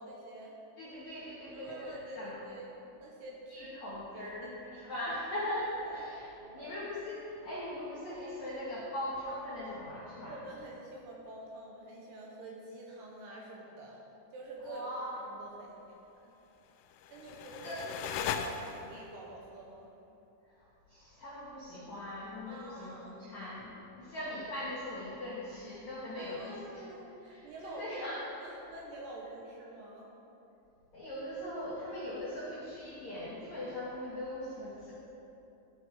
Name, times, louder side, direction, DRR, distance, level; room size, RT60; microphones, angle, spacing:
voice 1, 0.0-0.6 1.5-3.8 4.1-4.9 5.9-6.0 6.4-6.7 10.3-14.0 14.3-14.9 15.2-16.3 17.1-19.9 22.5-23.2 26.2-28.0 28.4-30.1, right 2 dB, 75° right, -2 dB, 2.7 m, -47 dB
voice 2, 0.8-1.9 2.1-2.5 3.5-6.2 6.5-10.4 14.6-15.1 17.6-17.8 20.9-26.6 27.2-28.2 30.9-34.9, left 1 dB, 65° left, -9 dB, 1.7 m, -40 dB
sound 1, 16.8-19.2, left 8 dB, 85° left, 2.8 m, -38 dB
13.5 x 6.4 x 4.6 m, 2.9 s
omnidirectional pair, 5.6 m